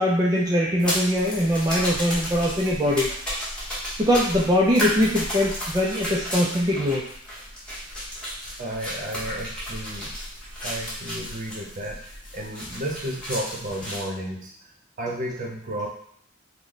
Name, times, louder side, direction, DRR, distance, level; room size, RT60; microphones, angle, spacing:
voice 1, 0.0-3.1 4.0-7.0, equal, 20° right, -4 dB, 0.4 m, -22 dB
sound 1, 0.8-14.0, equal, 5° left, 0.9 m, -33 dB
voice 2, 8.6-10.1 10.6-14.5 15.0-15.9, right 1 dB, 45° right, -1 dB, 0.8 m, -32 dB
3.1 x 2.2 x 3.9 m, 0.66 s
head